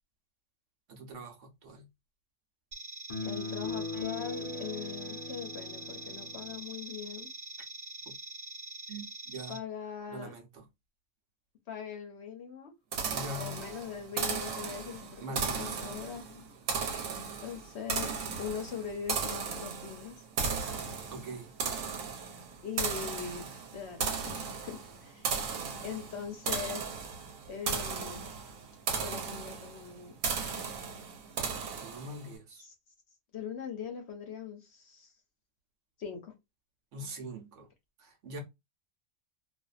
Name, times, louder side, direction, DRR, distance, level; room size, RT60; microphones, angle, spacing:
voice 1, 0.9-1.9 8.1-8.2 8.9-9.6 10.1-10.6 13.1-13.6 15.2-16.0 20.9-21.5 31.7-32.6 36.9-37.7 38.0-38.4, right 1 dB, 65° right, 1.1 m, -43 dB
sound 1, 2.7-9.6, right 2 dB, 45° right, 1.1 m, -44 dB
sound 2, 3.1-6.7, left 3 dB, 35° left, 0.5 m, -39 dB
voice 2, 3.2-7.3 9.5-10.3 11.7-12.7 13.4-16.5 17.4-18.1 18.4-20.2 22.6-23.5 23.7-25.3 25.8-26.9 27.5-28.3 29.0-30.1 32.6-32.7 33.3-35.1 36.0-36.3, left 7 dB, 60° left, 0.8 m, -41 dB
sound 3, 12.9-32.3, right 5 dB, 90° right, 1.1 m, -36 dB
2.5 x 2.5 x 2.3 m
omnidirectional pair, 1.4 m